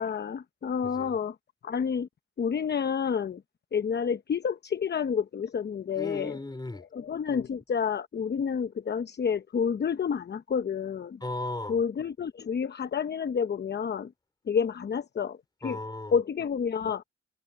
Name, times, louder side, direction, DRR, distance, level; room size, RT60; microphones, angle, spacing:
voice 1, 0.0-1.3 1.6-2.1 2.4-3.4 3.7-6.4 6.9-11.2 11.7-14.1 14.5-15.4 15.6-15.8 16.1-17.0, left 6 dB, 35° left, 0.8 m, -29 dB
voice 2, 0.8-1.2 6.0-6.8 11.2-11.8 15.6-16.2, left 2 dB, 15° left, 4.0 m, -36 dB
cardioid pair, 90°, 30 cm